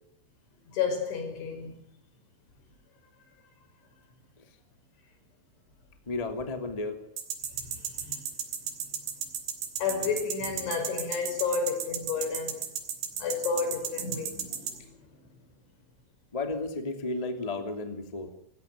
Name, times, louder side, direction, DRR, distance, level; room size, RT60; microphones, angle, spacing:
voice 1, 0.7-1.8 7.6-8.2 9.8-12.6 13.2-15.0, left 5 dB, 70° left, 7.8 m, -31 dB
voice 2, 6.0-7.0 11.5-11.6 16.3-18.3, left 2 dB, 15° left, 1.6 m, -33 dB
sound 1, 7.2-14.7, right 8 dB, 65° right, 5.1 m, -33 dB
28.0 x 16.0 x 9.3 m
omnidirectional pair, 5.6 m